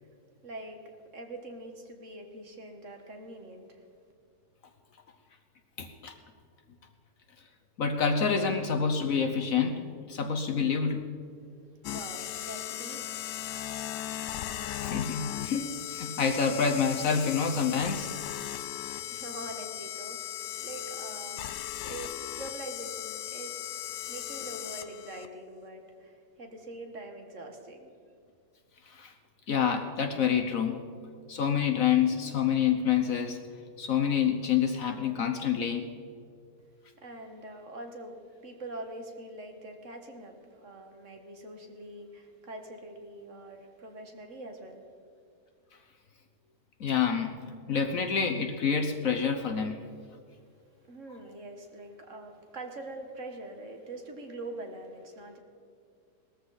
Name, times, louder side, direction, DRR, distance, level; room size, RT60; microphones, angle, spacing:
voice 1, 0.4-0.8 1.1-3.8 11.9-13.2 19.1-21.5 21.8-27.9 37.0-38.2 38.4-44.8 50.3-50.4 50.9-55.4, right 2 dB, 50° right, 4 dB, 1.7 m, -44 dB
voice 2, 5.8-6.1 7.8-9.8 10.1-11.1 14.8-18.1 19.1-19.2 28.9-29.1 29.5-30.8 31.3-33.4 33.8-35.9 46.8-47.4 47.7-49.8, left 7 dB, 60° left, 5 dB, 1.2 m, -27 dB
sound 1, 11.8-25.3, left 12 dB, 85° left, 1.2 m, -37 dB
19.0 x 14.0 x 4.0 m, 2.3 s
omnidirectional pair, 1.8 m